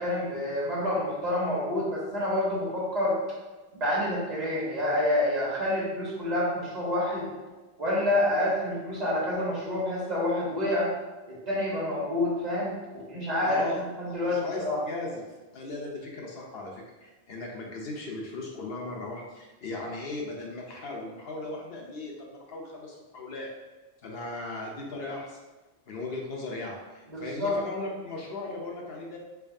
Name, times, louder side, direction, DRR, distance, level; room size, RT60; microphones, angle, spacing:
voice 1, 0.0-3.2 3.7-7.3 7.8-10.9 11.3-14.8 27.1-27.6, left 1 dB, 40° right, -6 dB, 1.2 m, -28 dB
voice 2, 13.4-15.3 15.5-23.5 24.0-25.4 25.9-29.2, left 2 dB, 70° left, -1 dB, 0.9 m, -37 dB
4.5 x 2.6 x 2.6 m, 1.2 s
omnidirectional pair, 1.1 m